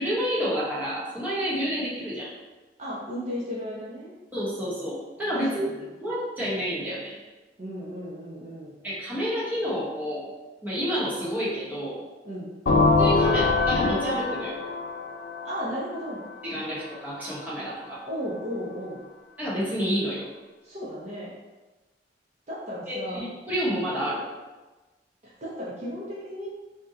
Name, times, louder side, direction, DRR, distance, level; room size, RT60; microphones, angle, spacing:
voice 1, 0.0-2.3 4.3-5.6 6.0-7.1 8.8-10.3 10.6-12.0 13.0-14.5 16.4-18.0 19.4-20.3 22.9-24.3, equal, 10° right, -9 dB, 0.9 m, -29 dB
voice 2, 2.8-4.1 5.3-5.8 7.6-8.7 12.2-12.5 15.4-16.2 18.0-19.0 20.6-21.3 22.5-23.2 25.2-26.5, equal, 40° right, -8 dB, 0.6 m, -35 dB
sound 1, 12.7-16.4, left 3 dB, 60° left, 0.5 m, -23 dB
2.7 x 2.2 x 3.6 m, 1.2 s
head